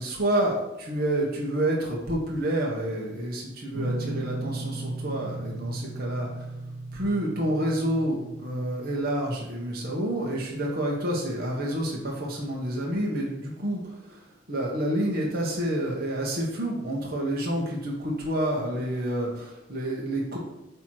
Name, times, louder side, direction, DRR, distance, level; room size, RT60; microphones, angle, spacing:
voice 1, 0.0-6.5 6.9-20.4, right 1 dB, 50° right, -3 dB, 1.3 m, -29 dB
Guitar, 3.7-9.0, right 2 dB, 75° right, 0.9 m, -36 dB
8.1 x 3.0 x 4.7 m, 0.95 s
head